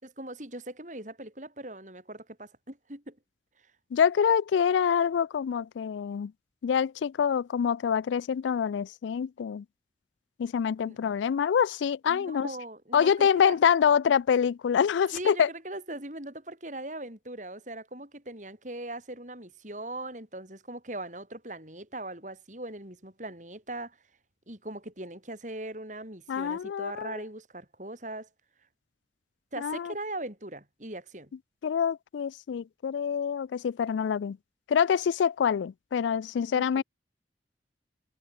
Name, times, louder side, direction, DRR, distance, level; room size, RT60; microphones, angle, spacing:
voice 1, 0.0-3.2 10.9-11.0 12.1-13.6 15.1-24.0 24.5-28.3 29.5-31.3 36.5-36.7, right 1 dB, 45° right, 6.0 m, -40 dB
voice 2, 3.9-6.3 6.6-9.6 10.4-12.5 12.9-15.5 26.3-27.2 29.6-29.9 31.6-34.4 34.7-36.8, left 7 dB, 90° left, 0.3 m, -26 dB
head